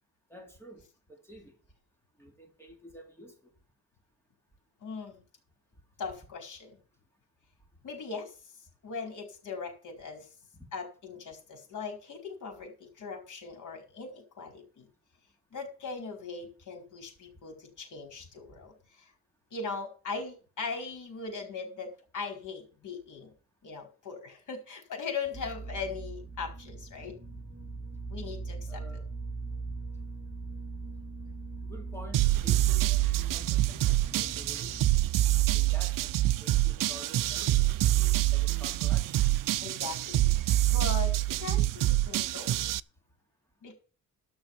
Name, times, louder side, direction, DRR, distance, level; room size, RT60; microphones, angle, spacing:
voice 1, 0.3-0.8 1.1-1.5 2.2-3.3 10.5-10.6 28.7-29.0 31.7-34.8 35.5-36.1 36.4-37.6 38.2-39.2, left 1 dB, 5° left, 2.5 m, -49 dB
voice 2, 4.8-5.2 6.0-6.7 7.8-8.3 8.8-10.3 10.7-14.9 15.5-19.1 19.5-23.3 23.6-27.2 28.1-28.8 39.6-42.6 43.6-43.8, left 5 dB, 65° left, 4.5 m, -40 dB
sound 1, 25.3-34.9, right 3 dB, 10° right, 3.4 m, -40 dB
sound 2, 32.1-42.8, right 15 dB, 70° right, 0.5 m, -26 dB
12.5 x 6.4 x 7.2 m
wide cardioid pair, 160°, 33 cm